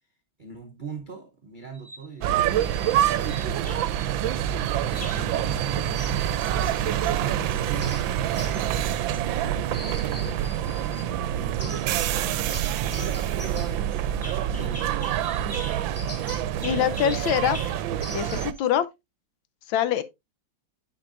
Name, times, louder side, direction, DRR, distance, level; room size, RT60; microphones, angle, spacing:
voice 1, 0.4-3.3 4.2-6.3 6.8-10.5 11.1-15.1, right 5 dB, 55° right, 0.5 m, -42 dB
sound 1, 1.7-2.1 3.3-4.1 4.9-5.3 5.9-7.2 7.5-9.4 9.7-11.1 11.6-12.2 12.5-18.6, equal, 15° left, 0.6 m, -41 dB
sound 2, 2.2-18.5, right 11 dB, 75° right, 1.3 m, -26 dB
voice 2, 16.6-17.6 18.1-18.9 19.7-20.0, left 10 dB, 75° left, 1.4 m, -24 dB
10.0 x 4.6 x 2.5 m
omnidirectional pair, 2.2 m